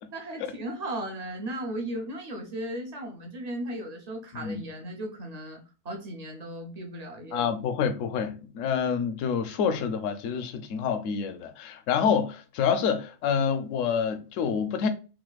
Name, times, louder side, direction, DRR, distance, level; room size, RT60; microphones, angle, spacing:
voice 1, 0.1-7.5, right 1 dB, 45° right, 0.5 m, -36 dB
voice 2, 7.3-14.9, left 7 dB, 70° left, 0.9 m, -27 dB
4.0 x 2.5 x 2.3 m
omnidirectional pair, 1.5 m